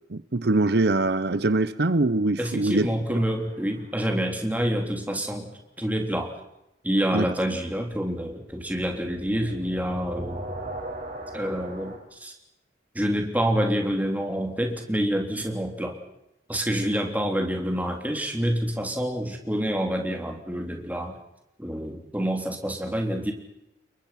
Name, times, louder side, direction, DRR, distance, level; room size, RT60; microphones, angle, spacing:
voice 1, 0.1-2.9 7.1-7.3, right 2 dB, 60° right, 0.8 m, -23 dB
voice 2, 2.4-5.5 5.8-6.4 6.8-10.4 11.3-12.3 12.9-16.0 16.5-21.2 21.6-23.3, equal, 10° right, 3.6 m, -27 dB
sound 1, 3.2-4.1 7.7-12.0, right 1 dB, 40° right, 5.4 m, -39 dB
29.5 x 22.5 x 5.9 m
head